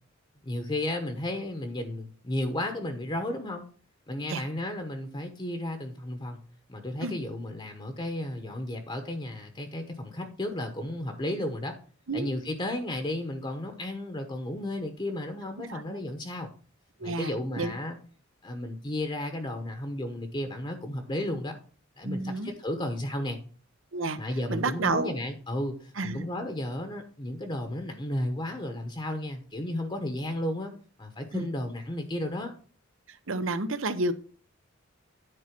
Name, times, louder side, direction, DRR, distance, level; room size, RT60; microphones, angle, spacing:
voice 1, 0.4-3.6 4.1-6.4 6.7-11.7 12.1-16.5 17.0-18.0 18.4-21.6 22.0-23.4 24.2-30.7 31.0-32.5, left 1 dB, 25° left, 6 dB, 1.0 m, -33 dB
voice 2, 15.6-16.0 17.0-17.7 22.0-22.5 23.9-24.2 24.5-25.1 26.0-26.2 31.3-31.5 33.3-34.1, right 3 dB, 70° right, 12 dB, 0.8 m, -30 dB
10.0 x 4.3 x 5.9 m, 0.41 s
head